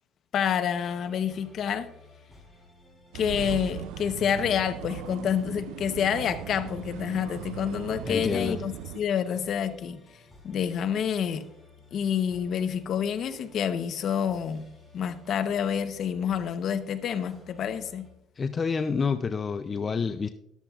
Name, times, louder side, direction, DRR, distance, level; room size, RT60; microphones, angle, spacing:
voice 1, 0.3-1.9 3.1-11.5 11.9-14.7 14.9-18.1, left 8 dB, 50° left, 9 dB, 0.9 m, -28 dB
sound 1, 0.7-18.1, left 2 dB, 5° left, 4.6 m, -54 dB
sound 2, 3.1-9.0, right 12 dB, 85° right, 0.3 m, -39 dB
voice 2, 8.1-8.6 18.4-20.3, left 5 dB, 25° left, 9 dB, 0.4 m, -28 dB
13.5 x 12.0 x 2.4 m, 0.79 s
cardioid pair, 140°, 0 cm